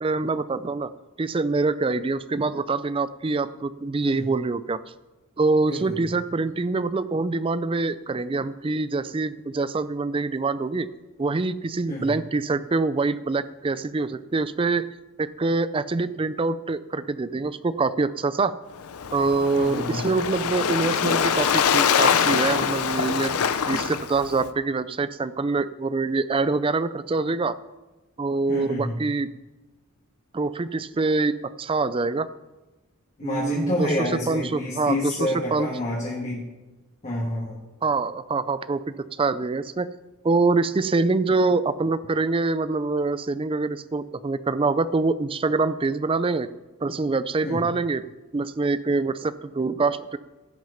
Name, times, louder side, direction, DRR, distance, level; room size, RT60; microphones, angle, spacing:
voice 1, 0.0-0.9 1.2-4.8 5.4-10.9 11.2-14.9 15.2-18.5 19.1-23.4 23.7-27.6 28.2-29.3 30.3-32.3 33.2-33.9 34.3-35.7 37.8-38.8 39.1-39.9 40.2-46.5 46.8-48.0 48.3-50.2, right 3 dB, 25° right, 15 dB, 0.4 m, -25 dB
voice 2, 5.7-6.1 11.9-12.1 19.5-20.0 28.5-29.0 33.2-36.5 37.0-37.6 47.4-47.6, left 1 dB, 35° left, -4 dB, 1.8 m, -28 dB
Waves surf, 18.8-24.5, left 7 dB, 80° left, 0.6 m, -24 dB
15.5 x 6.3 x 5.6 m, 1.2 s
head